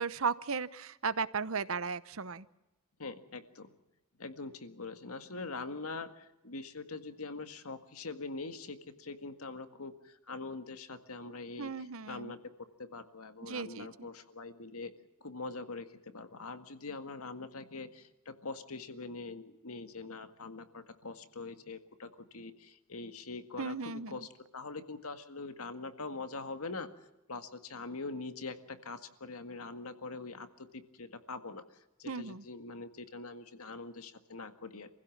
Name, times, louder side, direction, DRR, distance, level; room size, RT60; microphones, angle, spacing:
voice 1, 0.0-2.4 11.6-12.3 13.4-13.9 23.6-24.2 32.1-32.4, right 5 dB, 70° right, 16 dB, 0.9 m, -35 dB
voice 2, 3.0-3.7 4.2-12.4 12.8-14.9 15.2-26.9 27.3-34.9, left 3 dB, 80° left, 8 dB, 1.9 m, -43 dB
27.5 x 16.0 x 7.3 m, 0.97 s
head